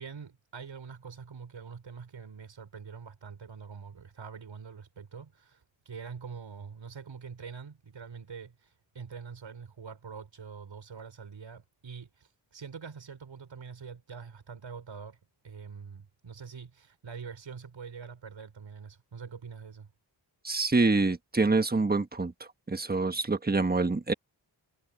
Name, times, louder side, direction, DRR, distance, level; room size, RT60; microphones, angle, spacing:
voice 1, 0.0-15.2 15.4-19.9, right 6 dB, 75° right, 4.5 m, -45 dB
voice 2, 20.4-22.3 22.7-24.1, right 3 dB, 20° right, 1.3 m, -26 dB
wide cardioid pair, 110°, 45 cm